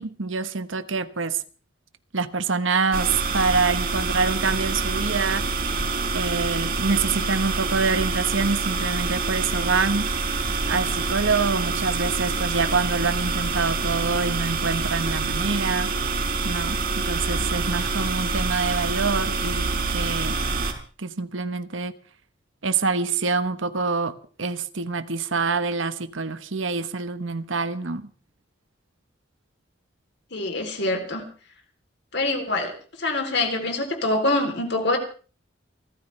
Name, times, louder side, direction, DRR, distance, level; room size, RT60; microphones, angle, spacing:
voice 1, 0.0-1.4 2.1-5.5 6.1-10.1 10.7-15.9 16.4-20.4 21.0-21.9 22.6-28.1, right 4 dB, 85° right, 1.2 m, -26 dB
sound 1, 2.9-20.7, right 3 dB, 50° right, 4.1 m, -26 dB
voice 2, 30.3-31.3 32.1-32.7 33.0-35.0, left 2 dB, 60° left, 3.4 m, -25 dB
29.0 x 14.0 x 3.3 m
head